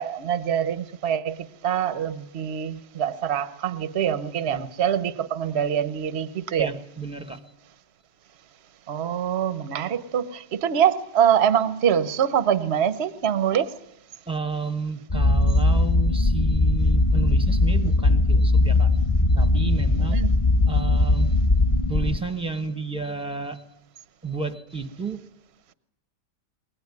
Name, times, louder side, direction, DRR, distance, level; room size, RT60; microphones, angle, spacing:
voice 1, 0.0-6.7 8.9-13.7 20.1-20.3, right 9 dB, 45° right, 12 dB, 1.1 m, -24 dB
voice 2, 6.6-7.4 13.5-13.6 14.3-18.9 19.4-20.2 20.7-21.3 21.9-23.6 24.2-25.2, right 4 dB, 5° right, 7 dB, 1.1 m, -31 dB
sound 1, 15.1-22.2, left 2 dB, 25° left, 1.2 m, -20 dB
22.0 x 18.5 x 9.7 m, 0.83 s
omnidirectional pair, 1.9 m